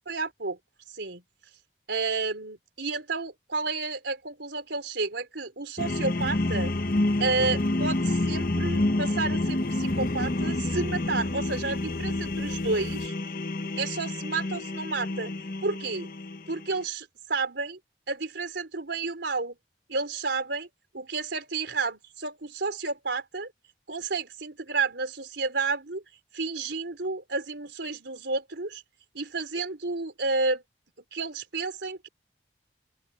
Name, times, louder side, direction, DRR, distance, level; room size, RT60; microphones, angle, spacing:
voice 1, 0.1-0.6 0.9-1.2 1.9-6.7 7.2-13.1 13.8-15.3 15.6-16.1 16.5-17.8 18.1-19.5 19.9-20.7 20.9-23.5 23.9-26.0 26.3-28.8 29.1-30.6 31.1-32.1, right 3 dB, 90° right, 3.9 m, -31 dB
sound 1, 5.8-16.8, left 2 dB, 50° left, 1.0 m, -28 dB
open air
head